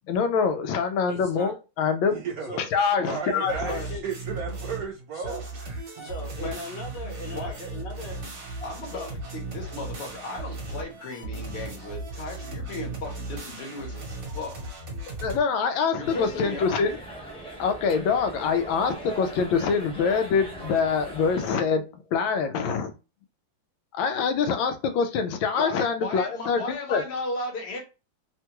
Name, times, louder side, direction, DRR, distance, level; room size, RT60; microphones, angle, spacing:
voice 1, 0.1-2.2 2.6-3.6 15.2-17.0 17.6-21.8 22.1-22.9 23.9-27.0, left 5 dB, 90° left, 1.4 m, -25 dB
voice 2, 1.1-1.5 2.4-2.8 3.3-4.1 5.1-5.4 6.0-8.2 8.8-9.1, left 2 dB, 70° left, 1.5 m, -39 dB
voice 3, 2.1-2.6 3.0-6.1, right 6 dB, 70° right, 0.8 m, -35 dB
sound 1, 3.4-4.9 5.2-15.4, right 2 dB, 50° right, 1.3 m, -36 dB
voice 4, 8.6-14.5 16.0-16.9 25.6-27.8, left 2 dB, 45° left, 1.0 m, -36 dB
sound 2, 16.0-21.6, right 1 dB, 5° left, 0.6 m, -40 dB
3.5 x 2.2 x 2.9 m
omnidirectional pair, 2.1 m